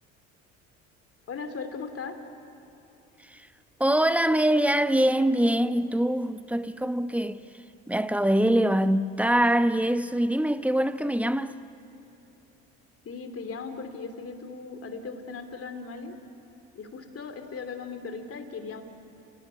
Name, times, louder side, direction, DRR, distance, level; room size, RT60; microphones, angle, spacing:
voice 1, 1.3-2.2 13.0-16.1 16.7-18.8, left 4 dB, 40° left, 3.1 m, -38 dB
voice 2, 3.8-7.4 7.9-11.6, right 1 dB, 5° right, 0.9 m, -23 dB
28.5 x 18.5 x 10.0 m
supercardioid pair, 75°, 35 cm